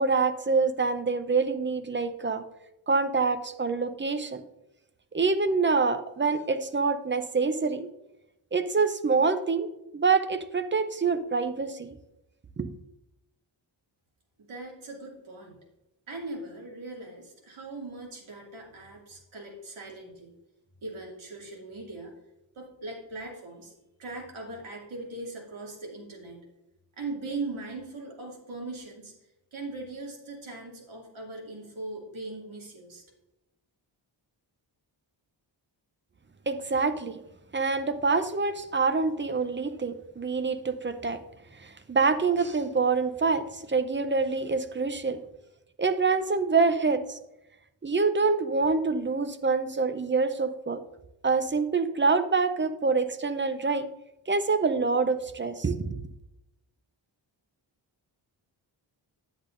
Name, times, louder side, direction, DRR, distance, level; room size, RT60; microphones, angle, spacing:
voice 1, 0.0-2.4 2.9-4.4 5.1-7.9 8.5-12.0 12.6-12.7 36.5-37.2 37.5-41.2 41.6-45.2 45.8-47.2 47.8-50.8 51.2-53.9 54.3-55.8, right 4 dB, 25° right, 10 dB, 0.6 m, -26 dB
voice 2, 14.4-15.6 16.1-20.3 20.8-22.1 22.5-23.7 24.0-26.4 26.9-29.1 29.5-33.0, right 2 dB, 80° right, -1 dB, 2.6 m, -40 dB
10.0 x 8.1 x 2.6 m, 0.91 s
wide cardioid pair, 95°, 47 cm